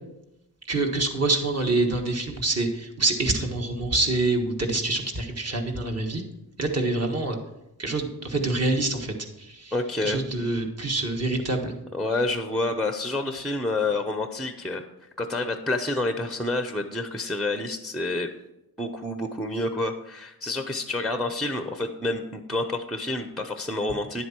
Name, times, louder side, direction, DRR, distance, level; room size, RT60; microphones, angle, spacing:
voice 1, 0.7-6.2 6.6-7.4 7.8-9.7 10.0-11.7, right 2 dB, 40° right, 2 dB, 1.6 m, -26 dB
voice 2, 9.7-10.2 11.9-14.8 15.2-18.3 18.8-24.3, left 2 dB, ahead, 7 dB, 0.6 m, -28 dB
10.5 x 7.9 x 4.4 m, 0.90 s
cardioid pair, 105°, 39 cm